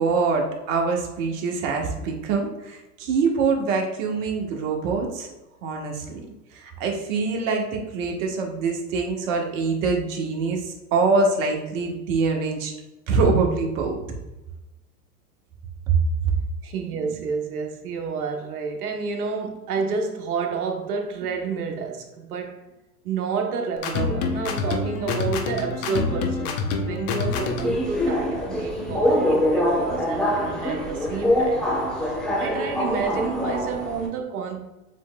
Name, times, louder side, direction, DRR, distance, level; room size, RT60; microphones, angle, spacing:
voice 1, 0.0-5.3 5.6-6.2 6.5-12.7 13.1-13.9 15.9-16.0, right 4 dB, 55° right, 1.3 m, -24 dB
voice 2, 16.6-22.6 23.0-26.5 26.9-34.7, right 5 dB, 70° right, 1.1 m, -30 dB
sound 1, 23.8-27.8, left 4 dB, 45° left, 0.8 m, -27 dB
Subway metro underground, 27.3-34.1, left 1 dB, ahead, 0.4 m, -24 dB
7.4 x 3.2 x 2.2 m
hypercardioid pair, 110°, 47 cm